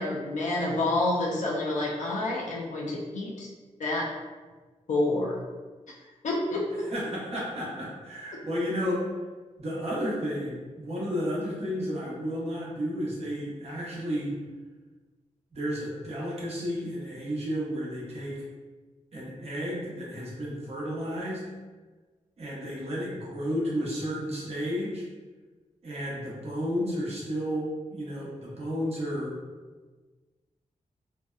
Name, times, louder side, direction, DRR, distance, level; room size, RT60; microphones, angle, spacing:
voice 1, 0.0-3.5 3.8-4.1 4.9-5.4 6.2-6.9, left 2 dB, 75° left, -3 dB, 0.4 m, -28 dB
voice 2, 6.9-9.1 9.6-14.3 15.5-18.4 19.1-21.4 22.4-25.0 25.8-29.3, equal, 55° right, -6 dB, 0.8 m, -32 dB
2.6 x 2.1 x 2.3 m, 1.3 s
wide cardioid pair, 135°, 13 cm